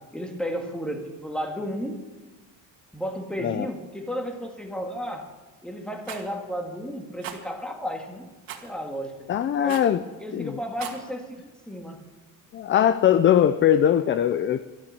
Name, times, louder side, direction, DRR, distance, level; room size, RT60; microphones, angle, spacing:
voice 1, 0.1-2.0 2.9-5.3 5.6-8.3 8.6-9.3 9.6-9.8 10.2-12.0, equal, 5° left, 3 dB, 1.8 m, -33 dB
Rattle, 6.0-6.3 7.2-7.4 8.5-8.7 9.7-10.0 10.6-11.0, right 9 dB, 75° right, 2.0 m, -37 dB
voice 2, 9.3-10.0 10.3-10.6 12.5-14.6, left 10 dB, 35° left, 13 dB, 0.4 m, -21 dB
13.0 x 12.5 x 7.0 m, 1.2 s
cardioid pair, 140°, 35 cm